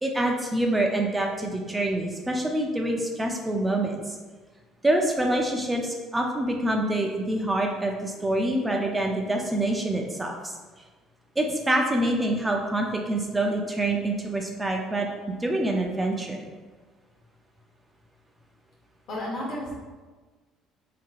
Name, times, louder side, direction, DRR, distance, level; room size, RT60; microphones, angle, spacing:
voice 1, 0.0-4.0 4.8-10.5 11.4-15.1 15.4-16.5, right 1 dB, 15° right, 1 dB, 0.5 m, -26 dB
voice 2, 19.1-19.7, left 1 dB, 60° left, -4 dB, 1.3 m, -32 dB
3.7 x 2.7 x 2.4 m, 1.3 s
hypercardioid pair, 70°, 0 cm